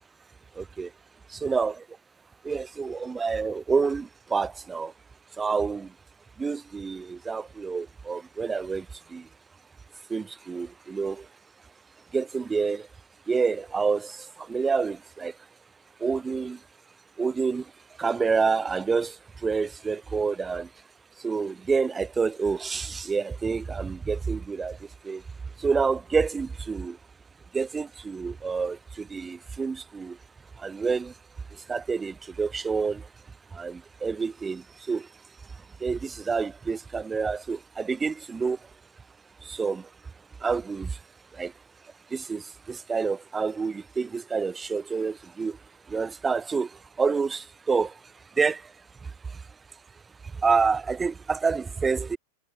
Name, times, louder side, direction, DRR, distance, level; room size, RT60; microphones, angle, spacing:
voice 1, 0.6-0.9 1.3-1.8 2.4-4.9 5.4-5.9 6.4-8.9 9.1-9.2 10.1-11.3 12.1-12.9 13.3-15.3 16.0-16.6 17.2-17.6 18.0-19.2 19.4-20.7 21.2-24.8 25.0-25.2 25.6-27.0 27.5-30.2 30.6-31.1 31.7-33.0 33.5-35.1 35.8-38.6 39.4-39.9 40.4-40.9 41.4-41.5 42.1-45.6 45.9-46.7 47.0-47.9 48.4-48.6 50.4-52.2, right 5 dB, 15° right, 0.4 m, -28 dB
figure-of-eight pair, 90°, 0 cm